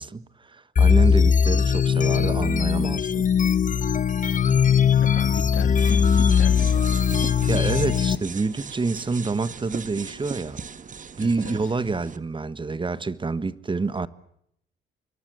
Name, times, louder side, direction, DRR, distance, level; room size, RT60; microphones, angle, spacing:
voice 1, 0.0-3.3 7.5-10.6 11.2-14.1, right 3 dB, 25° right, 1.4 m, -27 dB
sound 1, 0.8-8.2, left 7 dB, 40° left, 1.4 m, -20 dB
voice 2, 5.0-7.3 11.2-11.6, left 10 dB, 85° left, 2.3 m, -36 dB
sound 2, 5.8-12.2, right 6 dB, 40° right, 1.7 m, -38 dB
26.5 x 22.5 x 6.8 m
cardioid pair, 90°, 20 cm